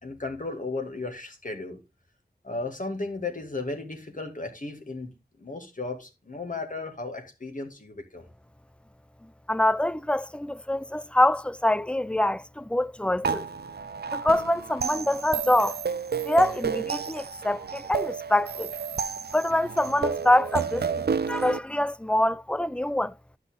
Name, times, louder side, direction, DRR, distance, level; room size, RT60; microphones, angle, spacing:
voice 1, 0.0-1.8 2.4-5.1 5.4-8.3, left 3 dB, 50° left, 2.1 m, -35 dB
voice 2, 9.5-13.5 14.1-15.8 16.2-18.7 19.3-23.1, left 1 dB, 5° left, 0.3 m, -25 dB
sound 1, 13.2-21.6, right 6 dB, 75° right, 0.5 m, -31 dB
10.5 x 5.9 x 3.7 m
wide cardioid pair, 50°, 17 cm